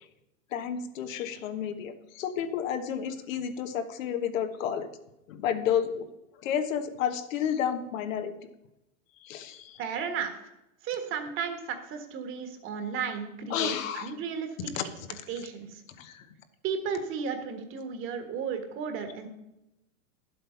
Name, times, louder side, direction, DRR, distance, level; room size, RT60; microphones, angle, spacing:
voice 1, 0.5-4.9 5.3-6.1 6.4-8.3 9.2-9.8 13.5-14.1 14.7-15.1 15.4-15.5 16.0-16.3, left 8 dB, 65° left, 9 dB, 1.3 m, -31 dB
voice 2, 9.8-10.4 10.8-14.7 15.3-15.8 16.6-19.3, right 6 dB, 30° right, 7 dB, 1.5 m, -34 dB
10.5 x 7.8 x 5.8 m, 0.90 s
supercardioid pair, 150°, 42 cm